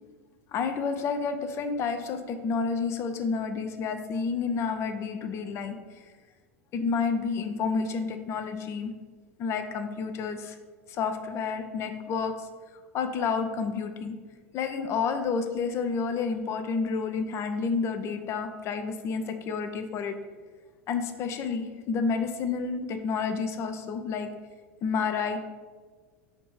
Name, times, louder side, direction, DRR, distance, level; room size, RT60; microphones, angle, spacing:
voice 1, 0.5-5.7 6.7-8.9 9.4-10.5 10.9-12.3 12.9-14.2 14.5-20.2 20.9-24.3 24.8-25.4, left 5 dB, 35° left, 7 dB, 0.4 m, -30 dB
4.3 x 2.6 x 4.3 m, 1.4 s
figure-of-eight pair, 80°, 8 cm